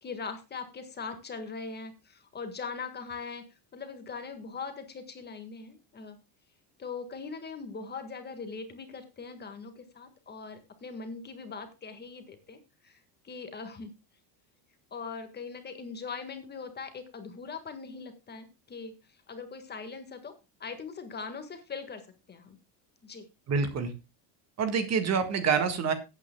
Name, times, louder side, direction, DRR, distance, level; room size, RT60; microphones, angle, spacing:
voice 1, 0.0-3.4 3.7-6.2 6.8-13.9 14.9-20.3 20.6-22.0 22.3-22.6 23.0-23.3, left 5 dB, 25° left, 7 dB, 1.7 m, -41 dB
voice 2, 23.5-23.9 24.6-25.9, right 5 dB, 35° right, 9 dB, 1.7 m, -26 dB
18.5 x 8.8 x 2.2 m, 0.27 s
cardioid pair, 145°, 43 cm